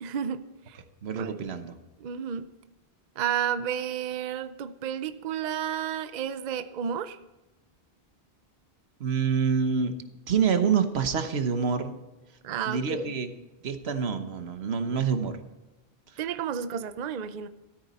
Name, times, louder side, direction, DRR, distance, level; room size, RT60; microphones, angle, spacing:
voice 1, 0.0-0.8 1.2-1.4 2.0-2.5 3.2-7.2 12.4-13.2 16.2-17.5, right 9 dB, 50° right, 12 dB, 0.6 m, -32 dB
voice 2, 1.0-1.8 9.0-10.0 10.3-12.0 12.7-13.3 13.6-15.4, right 6 dB, 80° right, 9 dB, 1.3 m, -27 dB
13.0 x 13.0 x 4.2 m, 1.0 s
omnidirectional pair, 1.0 m